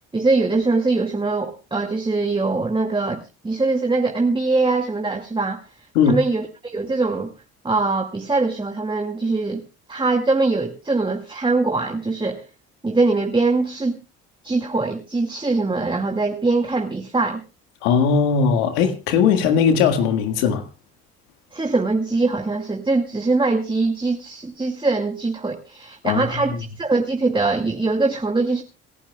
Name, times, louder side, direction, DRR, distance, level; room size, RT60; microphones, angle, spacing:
voice 1, 0.1-5.6 6.1-7.3 7.6-9.6 9.9-12.4 12.8-14.0 14.4-17.4 21.5-28.6, right 3 dB, 15° right, 2.1 m, -22 dB
voice 2, 17.8-20.7 26.0-26.6, left 6 dB, 90° left, 1.9 m, -19 dB
27.5 x 11.5 x 2.3 m
supercardioid pair, 65°, 31 cm